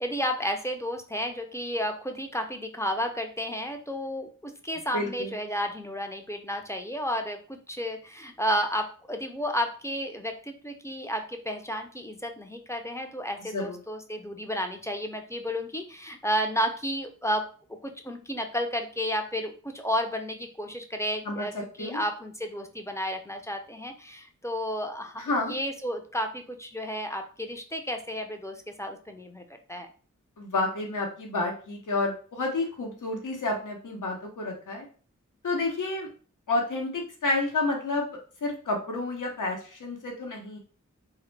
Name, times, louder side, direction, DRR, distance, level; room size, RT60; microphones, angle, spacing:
voice 1, 0.0-17.5 17.8-29.4 29.7-29.9, equal, 10° left, 4 dB, 0.3 m, -32 dB
voice 2, 4.9-5.3 13.5-13.8 21.3-21.5 21.8-22.0 25.2-25.5 30.4-34.9 35.4-36.1 36.5-40.6, left 2 dB, 85° left, 1 dB, 0.7 m, -30 dB
2.1 x 2.0 x 3.1 m, 0.40 s
wide cardioid pair, 55°, 31 cm